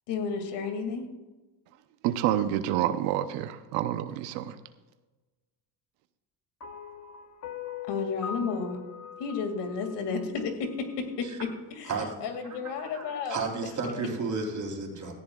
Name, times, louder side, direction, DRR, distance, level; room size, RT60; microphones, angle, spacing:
voice 1, 0.1-1.1 7.9-8.8 9.2-11.3 11.7-11.9 12.2-13.4 13.8-13.9, left 5 dB, 70° left, 6 dB, 2.3 m, -32 dB
voice 2, 2.0-4.6, right 11 dB, 85° right, 11 dB, 0.8 m, -28 dB
sound 1, 6.6-11.0, left 8 dB, 40° left, 1.2 m, -41 dB
voice 3, 12.4-15.2, right 4 dB, 45° right, 2 dB, 3.6 m, -33 dB
17.0 x 14.0 x 2.3 m, 1.2 s
supercardioid pair, 95°, 43 cm